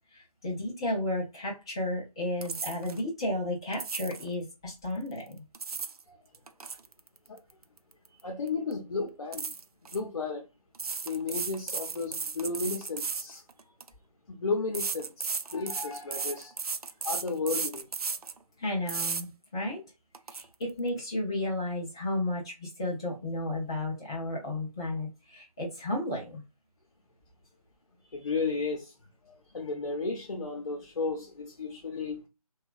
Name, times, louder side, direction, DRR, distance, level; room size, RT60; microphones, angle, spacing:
voice 1, 0.1-5.4 18.6-19.8 20.3-26.4, left 1 dB, 10° left, 0.4 m, -33 dB
sound 1, 2.4-3.0 3.7-4.3 5.3-6.0 6.3-8.2 8.5-8.7 9.3-10.0 10.7-13.9 14.7-18.4 18.9-19.2 19.7-19.8 20.1-20.4, right 5 dB, 75° right, 0.4 m, -35 dB
voice 2, 8.2-9.5 9.9-10.5 11.0-13.4 14.3-16.5 17.0-17.9 28.1-28.9 29.2-32.2, left 4 dB, 55° left, 0.7 m, -33 dB
2.9 x 2.3 x 2.3 m
figure-of-eight pair, 155°, 19 cm